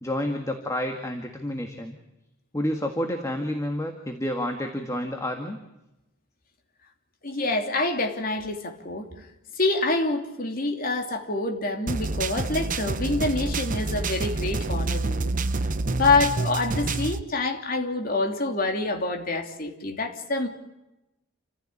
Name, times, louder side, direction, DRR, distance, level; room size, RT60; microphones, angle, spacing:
voice 1, 0.0-2.0 2.5-5.6, left 1 dB, 15° left, 4 dB, 1.8 m, -29 dB
voice 2, 7.2-9.1 9.6-15.3 15.9-20.5, left 2 dB, 45° left, 3 dB, 3.0 m, -26 dB
sound 1, 11.9-17.2, right 3 dB, 40° right, 0.9 m, -28 dB
28.5 x 15.5 x 8.7 m, 0.96 s
head